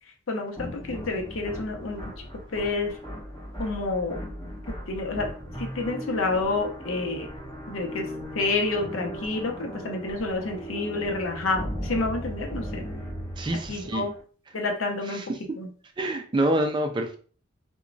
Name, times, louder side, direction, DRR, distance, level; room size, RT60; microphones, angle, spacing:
voice 1, 0.3-2.1 2.5-3.0 3.6-4.2 4.9-5.3 5.6-7.3 7.7-8.1 8.4-12.9 13.7-14.1 14.5-15.2 15.6-15.7, left 3 dB, 80° left, 3 dB, 0.6 m, -29 dB
sound 1, 0.6-14.2, equal, 20° left, 1.4 m, -37 dB
voice 2, 13.4-14.1 15.0-15.6 16.0-17.2, right 1 dB, 25° right, 4 dB, 0.3 m, -27 dB
2.9 x 2.2 x 2.5 m, 0.41 s
head